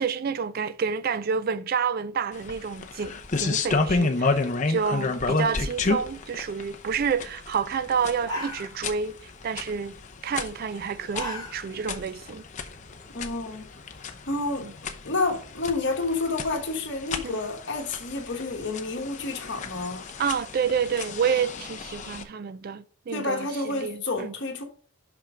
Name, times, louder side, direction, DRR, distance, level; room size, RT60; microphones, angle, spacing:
voice 1, 0.0-9.1 9.4-10.0 10.2-12.4 14.6-14.7 17.2-17.4 20.2-24.3, right 6 dB, 40° right, 0.3 m, -29 dB
sound 1, 2.3-22.2, left 3 dB, 35° left, 0.7 m, -31 dB
sound 2, 8.1-9.1 9.4-9.8 10.8-11.9 12.3-12.4 12.9-13.9, equal, 15° left, 2.0 m, -36 dB
voice 2, 13.1-13.7 14.3-20.1 23.1-24.6, left 3 dB, 50° left, 1.4 m, -30 dB
5.9 x 5.6 x 5.0 m
head